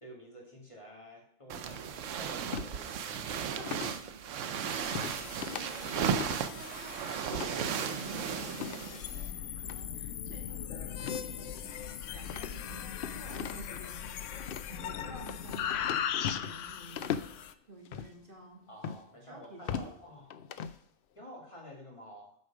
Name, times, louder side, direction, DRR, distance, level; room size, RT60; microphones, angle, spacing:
voice 1, 0.0-3.8 18.7-20.3 21.1-22.4, equal, 25° left, -1 dB, 2.5 m, -50 dB
sound 1, 1.5-9.3, right 7 dB, 85° right, 1.0 m, -35 dB
sound 2, 2.5-2.7 3.7-4.0 5.0-5.2 5.4-5.6 6.0-6.4 7.3-7.5 8.5-8.9 9.6-9.8 11.0-11.3 11.6-11.7 12.3-13.8 14.4-14.7 15.3-16.6 17.0-17.3 17.9-18.1 18.8-19.0 19.4-19.9 20.3-20.8, left 8 dB, 60° left, 0.7 m, -38 dB
voice 2, 3.3-11.7 12.1-18.7 19.3-19.9, right 2 dB, 45° right, 0 dB, 2.1 m, -51 dB
sound 3, 4.7-17.5, left 9 dB, 90° left, 0.9 m, -39 dB
8.4 x 5.0 x 6.0 m, 0.70 s
omnidirectional pair, 1.2 m